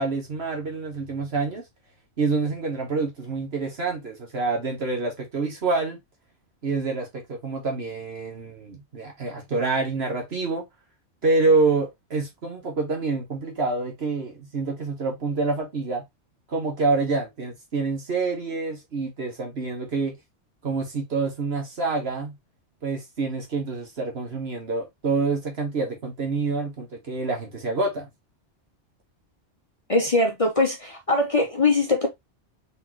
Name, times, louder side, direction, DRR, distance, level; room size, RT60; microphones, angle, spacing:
voice 1, 0.0-1.6 2.2-6.0 6.6-10.6 11.2-16.0 16.5-20.1 20.6-22.3 22.8-28.1, right 3 dB, 60° right, 1.6 m, -27 dB
voice 2, 29.9-32.1, left 2 dB, 30° left, 0.9 m, -21 dB
3.9 x 3.6 x 3.0 m
omnidirectional pair, 1.2 m